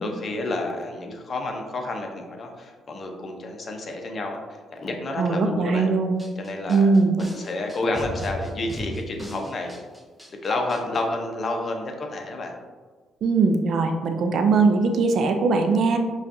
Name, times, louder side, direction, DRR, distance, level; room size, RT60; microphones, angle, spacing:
voice 1, 0.0-4.4 4.7-5.9 6.4-9.8 10.4-12.5, left 2 dB, 45° left, 2 dB, 0.6 m, -30 dB
voice 2, 5.2-6.2 6.7-7.1 13.2-16.0, right 4 dB, 65° right, 5 dB, 0.4 m, -20 dB
sound 1, 6.2-11.0, equal, ahead, 1.2 m, -36 dB
5.0 x 2.4 x 2.6 m, 1.4 s
cardioid pair, 90°, 0 cm